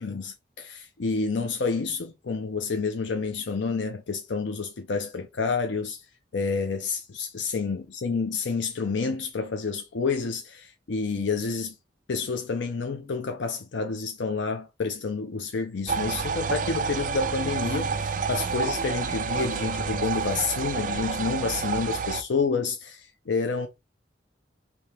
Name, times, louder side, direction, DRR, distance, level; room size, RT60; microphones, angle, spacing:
voice 1, 0.0-6.0 6.3-11.7 12.1-23.7, left 4 dB, 80° left, 0.6 m, -29 dB
sound 1, 15.9-22.2, right 5 dB, 45° right, 0.4 m, -29 dB
4.3 x 2.9 x 3.3 m
head